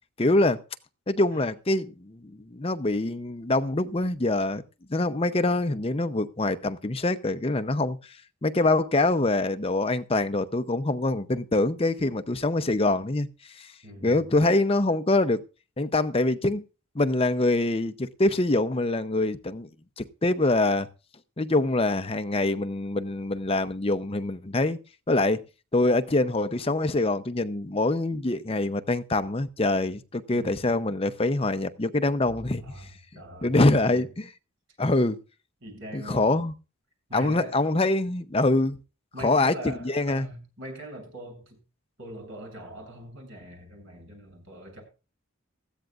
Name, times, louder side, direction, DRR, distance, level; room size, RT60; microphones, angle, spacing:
voice 1, 0.2-0.6 1.1-4.6 4.9-8.0 8.4-13.7 14.0-15.4 15.8-16.6 16.9-19.7 20.0-20.9 21.4-24.8 25.1-25.4 25.7-32.7 33.4-34.3 34.8-35.2 35.9-36.5 37.1-38.8 39.2-40.3, left 2 dB, 25° left, 0.7 m, -24 dB
voice 2, 13.8-14.2 30.3-30.7 32.6-32.8 33.1-34.1 35.6-36.4 37.1-37.7 39.1-41.6 42.0-44.8, right 1 dB, 60° right, 7.7 m, -42 dB
18.5 x 14.5 x 2.5 m
head